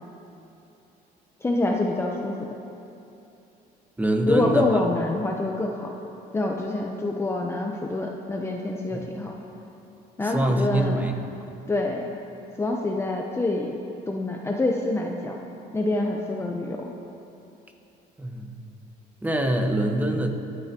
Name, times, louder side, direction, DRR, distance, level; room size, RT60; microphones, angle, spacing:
voice 1, 1.4-2.3 4.3-5.9 6.3-9.3 10.2-11.1 11.7-12.1 12.6-13.8 14.1-15.4 15.7-16.9, left 2 dB, 15° left, 0 dB, 0.8 m, -26 dB
voice 2, 4.0-4.8 8.9-9.0 10.2-11.1 11.4-11.6 18.2-18.5 19.2-20.3, right 1 dB, 10° right, 3 dB, 1.3 m, -24 dB
23.5 x 9.5 x 3.0 m, 2.8 s
cardioid pair, 110°, 17 cm